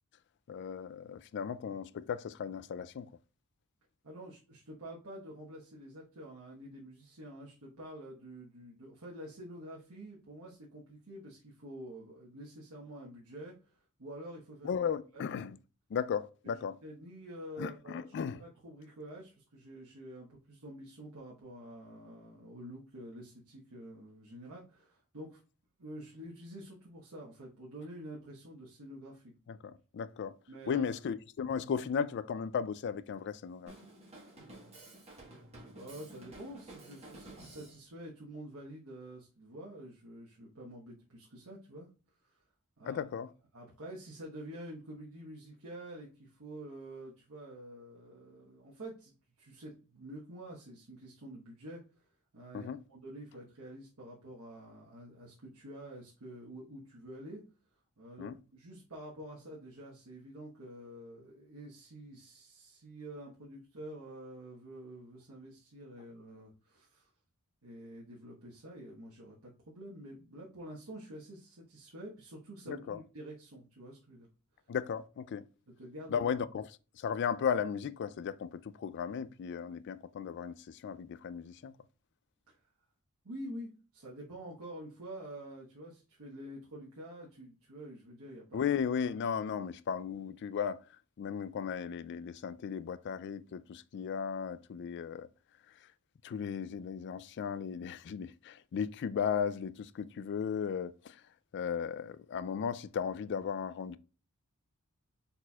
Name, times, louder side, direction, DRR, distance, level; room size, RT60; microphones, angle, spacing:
voice 1, 0.5-3.1 14.6-15.6 15.9-16.8 17.6-18.4 29.5-30.4 30.7-33.7 42.9-43.3 52.5-52.8 58.2-58.4 72.7-73.0 74.7-75.5 76.1-76.7 76.9-81.8 88.5-90.8 91.2-95.3 96.2-101.2 101.5-104.0, left 7 dB, 50° left, 0.3 m, -36 dB
voice 2, 4.0-14.8 15.1-15.3 16.4-16.5 16.8-18.0 18.4-25.4 25.8-29.3 30.5-31.0 35.7-41.9 42.2-42.4 42.8-43.0 43.5-51.8 52.3-57.4 58.0-67.1 67.6-74.3 75.8-76.3 82.5-82.6 83.2-88.7, right 1 dB, 75° right, 1.2 m, -48 dB
Drum kit, 33.7-37.8, right 1 dB, 30° right, 1.5 m, -52 dB
4.2 x 4.2 x 2.3 m
head